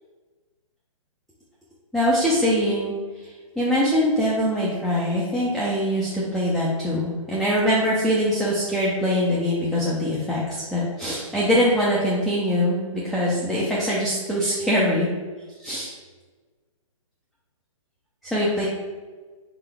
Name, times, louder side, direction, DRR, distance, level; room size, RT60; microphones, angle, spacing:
voice 1, 1.9-12.8 13.0-15.1 15.6-15.9 18.2-18.7, equal, ahead, -7 dB, 0.4 m, -23 dB
3.9 x 3.9 x 3.3 m, 1.4 s
hypercardioid pair, 145°, 17 cm